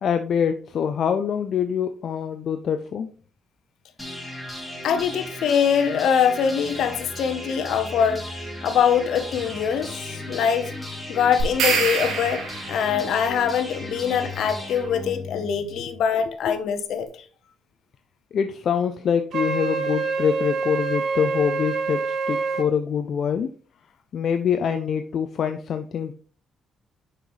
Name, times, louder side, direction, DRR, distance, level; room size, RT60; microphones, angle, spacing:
voice 1, 0.0-3.1 16.5-16.6 18.3-23.5 24.1-26.1, left 7 dB, 60° left, 0.5 m, -25 dB
sound 1, 4.0-15.9, left 1 dB, 5° left, 3.3 m, -36 dB
voice 2, 4.8-8.3 8.6-10.7 11.1-17.1, left 7 dB, 75° left, 1.0 m, -23 dB
sound 2, 11.4-13.0, right 5 dB, 85° right, 2.0 m, -25 dB
Wind instrument woodwind instrument, 19.3-22.7, right 5 dB, 65° right, 1.1 m, -26 dB
6.6 x 5.5 x 3.2 m
cardioid pair, 90°, 0 cm